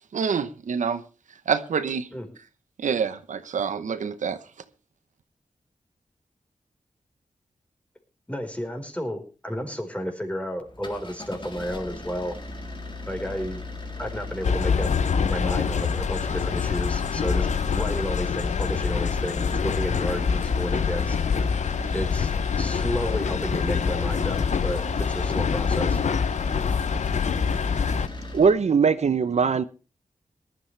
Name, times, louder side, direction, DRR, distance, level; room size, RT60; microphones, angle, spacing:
voice 1, 0.1-1.0 1.5-2.1 2.8-4.4, right 6 dB, 80° right, 1.0 m, -26 dB
voice 2, 8.3-12.3 13.1-13.6 14.0-14.9 15.3-21.2 21.9-26.0, equal, 10° left, 4.6 m, -32 dB
sound 1, 10.7-28.6, left 2 dB, 40° left, 3.4 m, -37 dB
sound 2, 14.4-28.1, left 6 dB, 70° left, 0.7 m, -25 dB
voice 3, 28.3-29.6, right 5 dB, 60° right, 0.7 m, -20 dB
19.5 x 13.0 x 3.3 m
cardioid pair, 55°, 13 cm